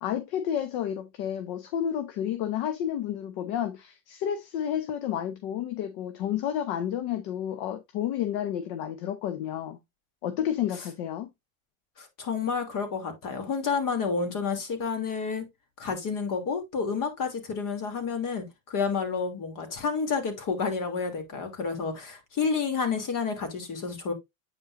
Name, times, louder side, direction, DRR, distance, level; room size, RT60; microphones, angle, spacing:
voice 1, 0.0-9.8 10.2-11.3, left 10 dB, 65° left, 1.1 m, -31 dB
voice 2, 12.0-15.5 15.8-24.1, left 5 dB, 50° left, 2.9 m, -30 dB
8.7 x 5.6 x 2.6 m
supercardioid pair, 100°, 41 cm